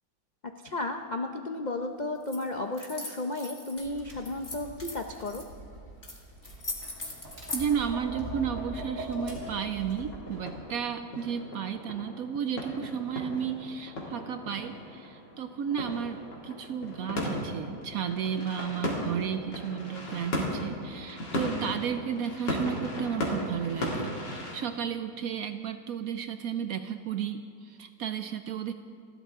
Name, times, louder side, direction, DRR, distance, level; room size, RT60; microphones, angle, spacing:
voice 1, 0.6-5.4, left 2 dB, 85° left, 4 dB, 0.4 m, -33 dB
sound 1, 2.2-2.4 2.7-3.9 4.2-5.4 6.0-6.2 6.4-7.7, left 2 dB, 25° left, 1.9 m, -38 dB
Tap, 3.8-10.0, right 1 dB, 45° right, 3.5 m, -42 dB
voice 2, 7.5-28.7, right 8 dB, 70° right, 9 dB, 0.9 m, -33 dB
sound 2, 8.3-24.6, left 1 dB, 70° left, 3.3 m, -37 dB
30.0 x 12.5 x 3.6 m, 2.2 s
omnidirectional pair, 2.0 m